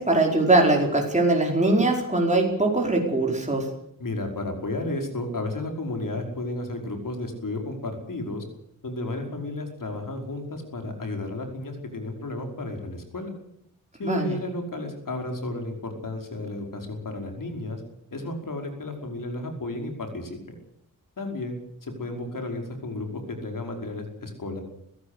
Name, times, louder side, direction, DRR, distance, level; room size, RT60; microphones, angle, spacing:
voice 1, 0.0-3.7 14.0-14.3, right 2 dB, 20° right, 0 dB, 5.0 m, -21 dB
voice 2, 4.0-8.4 8.8-13.3 14.0-17.8 18.1-20.6 21.2-24.6, left 2 dB, 70° left, 4 dB, 5.3 m, -33 dB
23.5 x 15.5 x 8.3 m, 0.73 s
wide cardioid pair, 95°, 34 cm